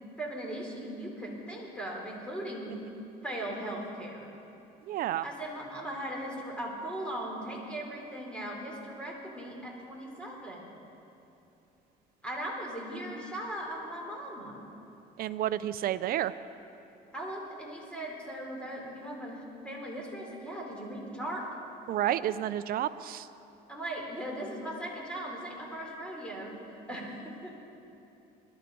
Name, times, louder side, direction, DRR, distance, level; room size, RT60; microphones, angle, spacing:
voice 1, 0.2-2.7 3.2-4.3 5.2-10.7 12.2-14.6 17.1-21.5 23.7-26.5 26.9-27.6, right 1 dB, 5° left, -2 dB, 3.4 m, -38 dB
voice 2, 4.9-5.2 15.2-16.3 21.9-23.3, right 12 dB, 60° right, 14 dB, 0.5 m, -30 dB
21.5 x 12.5 x 3.9 m, 2.9 s
cardioid pair, 110°, 17 cm